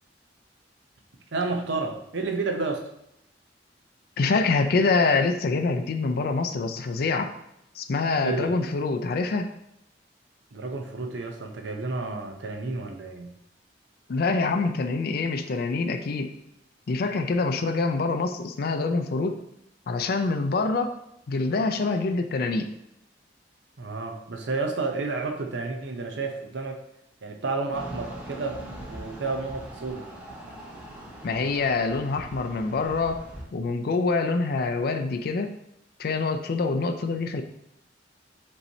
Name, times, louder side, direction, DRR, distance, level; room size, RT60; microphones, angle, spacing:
voice 1, 1.3-2.8 8.2-8.6 10.5-13.3 23.8-26.8 27.2-28.6 28.9-30.0, right 3 dB, 75° right, 3 dB, 0.6 m, -31 dB
voice 2, 4.2-7.3 7.8-9.5 14.1-16.3 16.9-19.4 19.9-20.9 21.3-22.7 31.2-33.2 33.5-35.5 36.0-37.4, left 3 dB, 60° left, 7 dB, 0.4 m, -25 dB
sound 1, 27.7-33.4, right 1 dB, 5° right, 0.8 m, -41 dB
5.3 x 3.1 x 2.7 m, 0.80 s
head